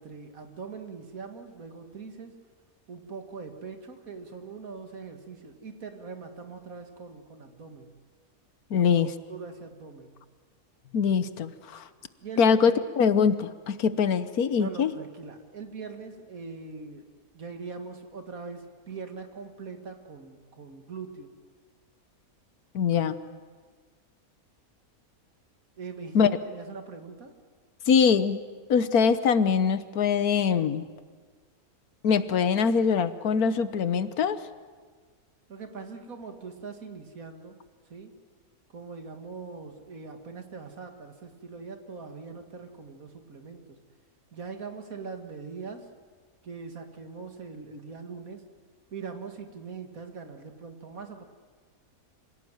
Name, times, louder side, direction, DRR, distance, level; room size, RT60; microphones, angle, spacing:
voice 1, 0.0-2.4 2.9-7.9 8.7-9.0 9.3-10.2 12.2-12.6 14.6-17.1 17.3-21.3 25.8-27.3 35.5-37.6 37.9-38.1 38.7-43.8 44.3-45.9 46.4-48.4 48.9-51.3, right 4 dB, 70° right, 6 dB, 2.3 m, -42 dB
voice 2, 8.7-9.1 10.9-11.8 12.4-14.9 22.7-23.2 26.1-26.3 27.9-28.4 28.7-30.8 32.0-34.4, left 6 dB, 80° left, 13 dB, 1.5 m, -23 dB
26.0 x 17.5 x 9.2 m, 1.5 s
omnidirectional pair, 1.5 m